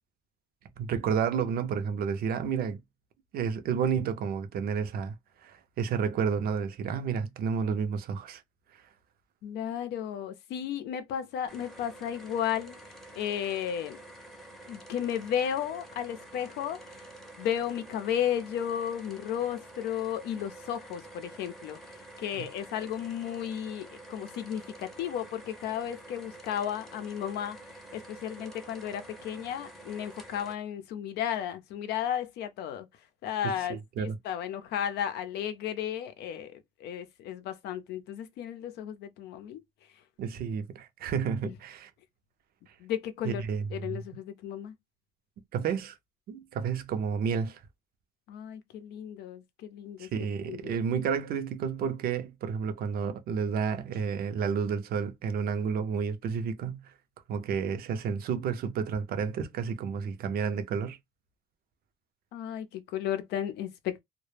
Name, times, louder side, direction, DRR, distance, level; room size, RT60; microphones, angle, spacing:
voice 1, 0.8-2.8 3.3-5.1 5.4-8.4 22.3-22.5 33.4-34.2 40.2-41.9 43.2-44.0 45.5-46.0 46.3-47.6 50.0-56.9 57.3-61.0, right 6 dB, 60° right, 0.5 m, -31 dB
voice 2, 9.4-12.8 13.2-14.0 14.7-16.8 17.4-21.8 22.2-27.6 27.9-32.9 33.2-39.6 41.4-41.5 42.8-43.4 43.7-44.7 48.3-50.1 50.5-50.7 62.3-64.0, left 9 dB, 80° left, 0.5 m, -34 dB
sound 1, 11.5-30.6, right 1 dB, ahead, 0.6 m, -48 dB
2.1 x 2.0 x 3.1 m
cardioid pair, 110°, 17 cm